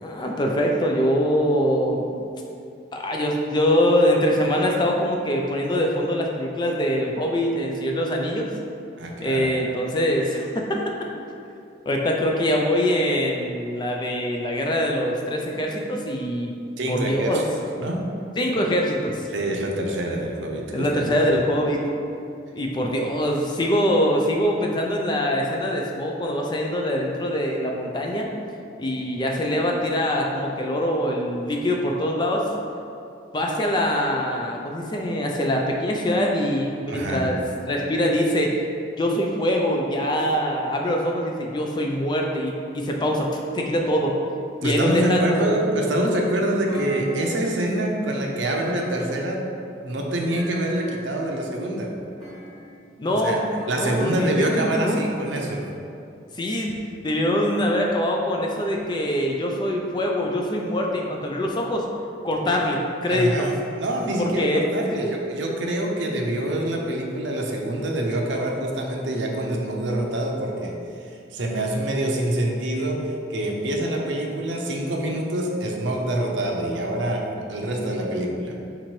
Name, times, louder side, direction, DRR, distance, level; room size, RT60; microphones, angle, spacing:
voice 1, 0.0-2.1 2.9-8.5 9.2-10.9 11.9-16.5 16.9-17.4 18.4-19.3 20.7-21.8 22.5-28.3 28.8-32.4 33.3-37.4 37.7-38.5 39.0-44.2 44.6-45.6 53.0-53.5 53.8-55.0 56.4-56.8 57.0-61.8 62.2-63.5 64.2-65.0, equal, 25° left, 0 dB, 0.3 m, -23 dB
voice 2, 9.0-9.8 16.8-17.5 17.7-18.1 19.3-20.9 36.9-37.3 44.6-49.5 49.8-52.0 53.1-53.4 53.7-55.7 63.1-78.6, right 1 dB, 80° right, 0 dB, 0.6 m, -26 dB
Thump thud, 46.7-47.6 48.4-49.3 50.3-51.1 52.2-52.9 53.6-54.6, equal, 5° left, 1.3 m, -43 dB
3.8 x 3.0 x 4.3 m, 2.5 s
head